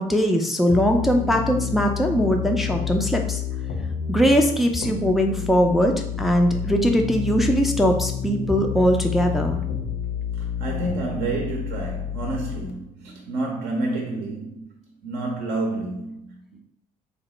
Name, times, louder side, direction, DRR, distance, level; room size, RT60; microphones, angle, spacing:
voice 1, 0.0-3.4 4.1-5.9 6.2-9.6, equal, ahead, 0.3 m, -21 dB
sound 1, 0.7-12.7, left 8 dB, 50° left, 0.6 m, -29 dB
voice 2, 10.4-14.7 15.0-16.6, right 2 dB, 55° right, 0.6 m, -29 dB
3.2 x 2.1 x 2.9 m
figure-of-eight pair, 50°, 21 cm